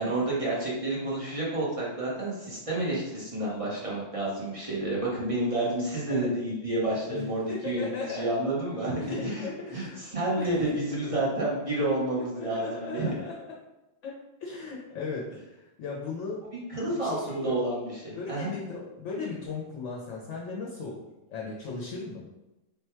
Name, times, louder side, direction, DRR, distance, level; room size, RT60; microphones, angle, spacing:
voice 1, 0.0-13.1 16.7-18.5, right 1 dB, 30° right, -6 dB, 1.0 m, -30 dB
voice 2, 7.5-8.3 9.0-10.0 10.4-11.2 12.3-13.3 14.0-14.1 14.4-16.4 16.9-17.6 18.2-21.0 21.3-22.3, left 4 dB, 70° left, -3 dB, 1.0 m, -37 dB
3.6 x 2.2 x 4.4 m, 1.0 s
omnidirectional pair, 1.3 m